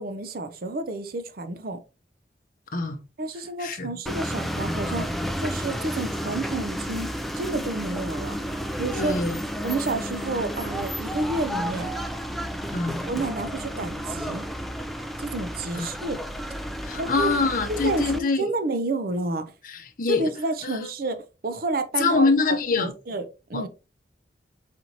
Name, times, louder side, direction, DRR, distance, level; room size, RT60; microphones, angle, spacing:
voice 1, 0.0-1.8 3.2-7.1 7.3-8.4 8.8-9.2 9.6-11.9 13.1-14.5 15.2-16.2 16.9-17.3 17.7-19.5 20.1-22.3 22.8-23.7, right 2 dB, 55° right, 0.5 m, -30 dB
voice 2, 3.6-3.9 8.9-9.4 12.7-13.0 15.7-15.9 16.8-18.5 19.6-20.3 20.6-20.9 22.0-22.9 23.5-23.6, left 3 dB, 50° left, 0.7 m, -24 dB
sound 1, 4.1-18.2, equal, ahead, 0.3 m, -32 dB
4.2 x 4.2 x 2.9 m
head